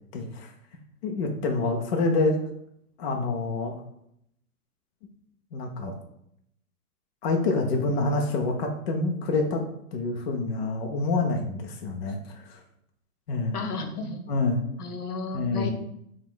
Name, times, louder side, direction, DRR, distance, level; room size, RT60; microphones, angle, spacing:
voice 1, 0.1-0.5 1.0-2.3 3.0-3.8 5.5-5.9 7.2-9.6 9.9-12.6 13.3-13.6 14.3-14.7 15.3-15.7, left 3 dB, 45° left, 2 dB, 0.6 m, -27 dB
voice 2, 13.5-14.2 14.8-15.7, left 4 dB, 75° left, 5 dB, 1.0 m, -33 dB
4.7 x 2.3 x 3.7 m, 0.74 s
hypercardioid pair, 155°, 46 cm